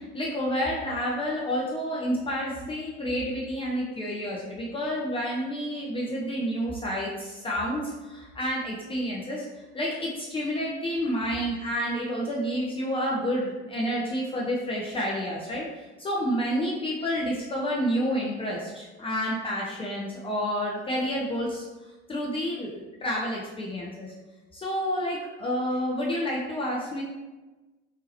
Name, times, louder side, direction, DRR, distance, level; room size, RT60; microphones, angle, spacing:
voice 1, 0.0-9.5 9.7-15.7 16.0-21.6 22.1-24.1 24.5-27.0, equal, 15° left, -4 dB, 0.5 m, -29 dB
3.6 x 2.7 x 2.9 m, 1.2 s
figure-of-eight pair, 75°, 35 cm